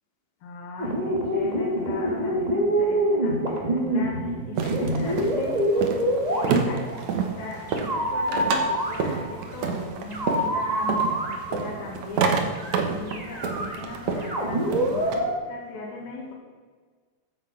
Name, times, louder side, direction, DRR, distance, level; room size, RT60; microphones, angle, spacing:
voice 1, 0.4-16.3, left 3 dB, 80° left, -4 dB, 3.7 m, -39 dB
sound 1, 0.8-7.0 7.7-9.5 10.1-11.8 12.5-12.8 13.1-15.3, equal, 25° right, 0.8 m, -26 dB
sound 2, 4.6-15.2, right 5 dB, 60° right, 2.2 m, -29 dB
14.5 x 8.0 x 5.8 m, 1.5 s
omnidirectional pair, 4.2 m